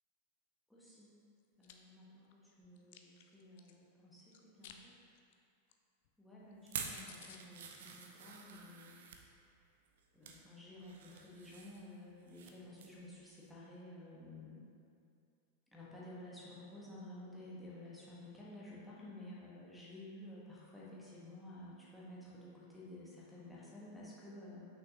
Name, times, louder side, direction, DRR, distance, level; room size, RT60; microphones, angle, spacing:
voice 1, 0.7-1.1 1.6-4.9 6.2-9.0 10.1-14.6 15.7-24.7, left 1 dB, 5° left, -8 dB, 1.3 m, -53 dB
Chewing mastication, 1.4-1.7 2.2-3.7 4.3-4.8 5.1-5.3 5.7-5.8 6.0-6.1 6.5-6.6 6.8-6.9 7.1-7.4, left 9 dB, 50° left, 0.4 m, -57 dB
sound 1, 6.6-9.2 9.9-10.4 10.8-12.5 12.8-13.0 13.4-13.5, right 6 dB, 60° right, 0.5 m, -48 dB
6.0 x 5.8 x 2.9 m, 2.5 s
figure-of-eight pair, 90°, 0 cm